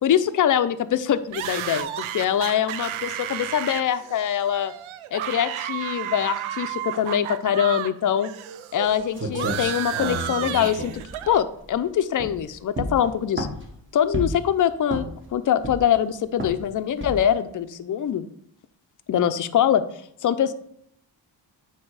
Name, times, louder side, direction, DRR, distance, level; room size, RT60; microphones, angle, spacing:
voice 1, 0.0-4.7 5.1-8.3 8.7-10.9 11.3-13.5 13.9-18.3 19.1-19.8 20.2-20.5, left 9 dB, 45° left, 11 dB, 0.5 m, -23 dB
sound 1, 1.3-7.9 8.2-11.4, right 11 dB, 90° right, 0.5 m, -32 dB
sound 2, 8.9-9.0 9.2-11.8 12.1-12.4 12.7-13.7 14.1-14.5 14.9-15.3 15.6-16.0 16.4-16.6 17.0-17.3, right 1 dB, 25° right, 1.3 m, -31 dB
8.7 x 2.9 x 4.7 m, 0.68 s
cardioid pair, 95°, 47 cm